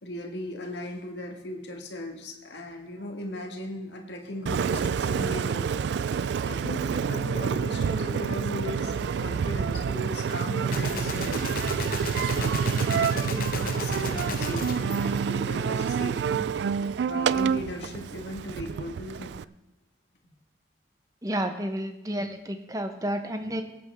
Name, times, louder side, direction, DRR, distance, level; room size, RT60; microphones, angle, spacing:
voice 1, 0.0-5.7 6.0-11.5 12.1-16.5 17.1-19.4, left 1 dB, 75° left, 2 dB, 1.7 m, -37 dB
Engine, 4.5-19.4, right 6 dB, 70° right, 0.3 m, -28 dB
Gunshot gunfire, 10.7-15.9, left 4 dB, 50° left, 0.9 m, -35 dB
voice 2, 21.2-23.6, right 1 dB, 20° right, 7 dB, 0.9 m, -31 dB
19.0 x 8.7 x 3.5 m, 0.95 s
head